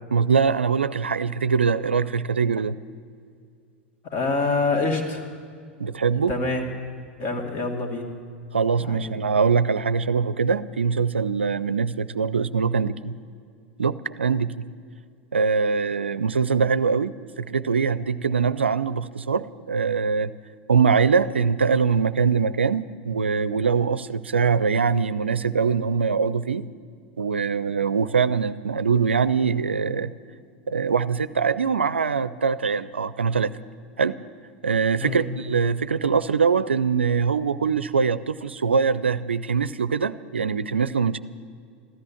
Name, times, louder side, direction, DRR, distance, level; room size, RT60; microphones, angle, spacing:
voice 1, 0.1-2.8 5.8-6.3 8.5-13.1 13.8-14.7 15.3-20.3 20.7-26.7 27.2-30.1 30.7-33.5 34.0-34.2 34.6-41.2, right 5 dB, 80° right, 15 dB, 0.4 m, -23 dB
voice 2, 4.0-5.3 6.3-6.6 7.2-8.1 8.8-9.1 35.0-35.3, left 3 dB, 45° left, 2 dB, 2.4 m, -26 dB
14.0 x 13.0 x 7.2 m, 2.3 s
figure-of-eight pair, 85°, 6 cm